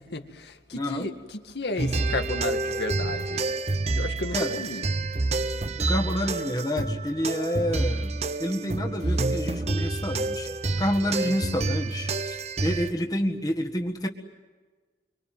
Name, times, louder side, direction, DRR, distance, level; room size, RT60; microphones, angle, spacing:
voice 1, 0.0-3.5 3.9-4.8 11.2-11.3, left 2 dB, 80° left, 6 dB, 2.2 m, -33 dB
voice 2, 0.7-1.1 4.3-4.6 5.8-10.5 10.8-14.1, equal, 20° left, 3 dB, 1.7 m, -29 dB
sound 1, 1.8-12.9, right 2 dB, 35° right, 0.8 m, -28 dB
25.0 x 25.0 x 9.3 m, 1.4 s
head